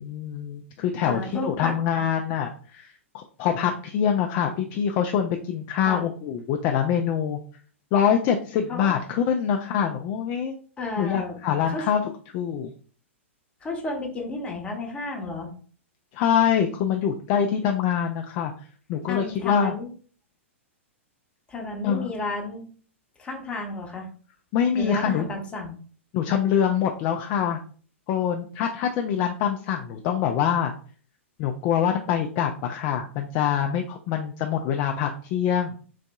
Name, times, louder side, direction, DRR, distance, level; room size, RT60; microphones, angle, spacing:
voice 1, 0.0-7.4 7.9-10.6 11.0-12.7 16.1-18.5 18.9-19.8 21.8-22.1 24.5-25.3 26.1-27.6 28.1-30.7 31.4-35.7, left 8 dB, 35° left, 4 dB, 0.3 m, -25 dB
voice 2, 1.0-1.7 5.9-6.1 8.7-8.9 10.8-11.4 11.7-11.8 13.6-15.5 19.1-19.9 21.5-22.6 23.2-24.1 24.7-25.7, left 2 dB, 15° left, 0 dB, 0.8 m, -32 dB
3.9 x 2.6 x 2.2 m, 0.42 s
figure-of-eight pair, 105°, 7 cm